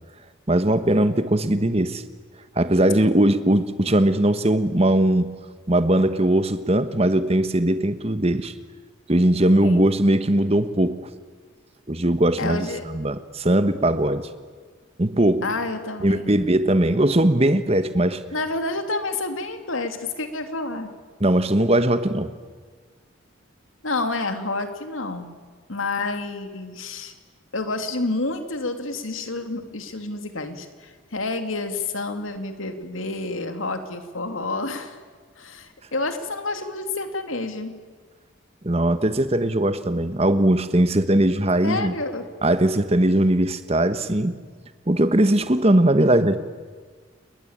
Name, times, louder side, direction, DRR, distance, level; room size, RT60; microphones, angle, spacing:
voice 1, 0.5-2.0 2.6-5.4 5.7-8.5 9.1-11.1 11.9-14.3 15.0-15.5 16.0-18.2 21.2-22.3 38.6-41.9 42.4-44.4 44.9-46.4, right 1 dB, 30° right, 11 dB, 1.3 m, -20 dB
voice 2, 12.4-12.8 15.4-16.3 18.3-20.9 23.8-25.3 25.7-27.1 27.5-35.0 35.4-37.8 41.6-42.3, left 2 dB, 80° left, 7 dB, 2.6 m, -29 dB
29.5 x 21.0 x 8.8 m, 1.5 s
head